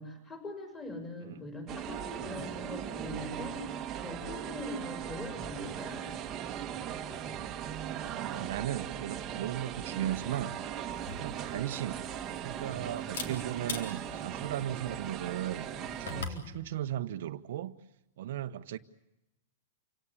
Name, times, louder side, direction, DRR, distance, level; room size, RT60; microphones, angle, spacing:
voice 1, 0.0-6.0 16.1-16.5, left 1 dB, 15° left, 6.1 m, -42 dB
sound 1, 1.7-16.2, right 9 dB, 20° right, 1.3 m, -39 dB
voice 2, 8.0-10.9 11.2-12.0 12.4-17.7 18.2-18.8, right 12 dB, 60° right, 0.9 m, -37 dB
Camera, 10.9-16.5, left 4 dB, 75° left, 4.0 m, -44 dB
28.0 x 17.5 x 8.4 m
supercardioid pair, 165°, 0 cm